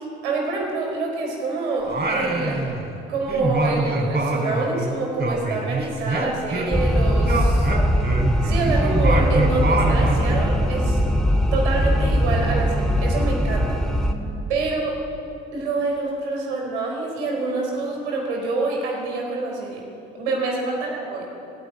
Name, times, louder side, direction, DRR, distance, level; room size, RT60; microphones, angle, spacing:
voice 1, 0.2-2.7 3.1-7.7 8.4-11.0 11.5-13.8 14.5-15.0 15.5-19.8 20.2-21.3, right 3 dB, 80° right, 0 dB, 4.1 m, -26 dB
Singing, 1.9-3.0 3.3-6.9 7.2-10.4, right 2 dB, 30° right, 4.5 m, -25 dB
sound 1, 6.7-14.1, equal, ahead, 2.3 m, -20 dB
30.0 x 10.5 x 9.0 m, 2.8 s
figure-of-eight pair, 50°, 33 cm